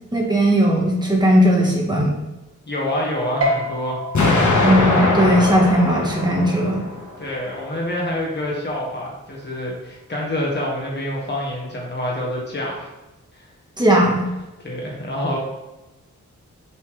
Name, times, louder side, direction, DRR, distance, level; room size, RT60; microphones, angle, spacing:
voice 1, 0.1-2.1 4.6-6.8 13.8-14.2, equal, 15° right, -2 dB, 1.4 m, -17 dB
voice 2, 2.7-4.0 7.2-12.9 13.3-13.5 14.1-14.2 14.6-15.4, left 1 dB, 35° left, -3 dB, 1.7 m, -27 dB
sound 1, 3.4-10.2, equal, 50° right, 1.2 m, -32 dB
Explosion, 4.1-7.1, left 3 dB, 65° left, 1.3 m, -20 dB
7.3 x 4.2 x 3.4 m, 1.0 s
wide cardioid pair, 140°, 31 cm